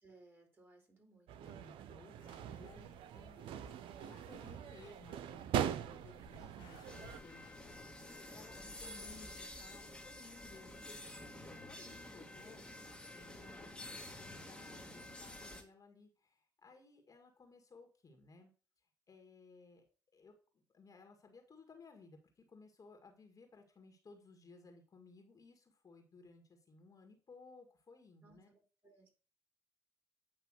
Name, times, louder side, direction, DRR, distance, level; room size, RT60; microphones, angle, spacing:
voice 1, 0.0-1.5 2.2-2.3 13.4-13.7 28.2-29.1, right 3 dB, 25° right, 3 dB, 3.3 m, -64 dB
sound 1, 1.3-7.2, right 9 dB, 75° right, 0.6 m, -42 dB
voice 2, 1.4-12.7 13.1-18.5 19.1-19.9 20.1-28.5, left 3 dB, 40° left, 4 dB, 1.8 m, -60 dB
sound 2, 2.2-7.8, left 6 dB, 80° left, 1.6 m, -62 dB
sound 3, 6.8-15.6, left 1 dB, 10° left, 1.7 m, -50 dB
8.9 x 3.0 x 6.3 m, 0.37 s
supercardioid pair, 65°, 9 cm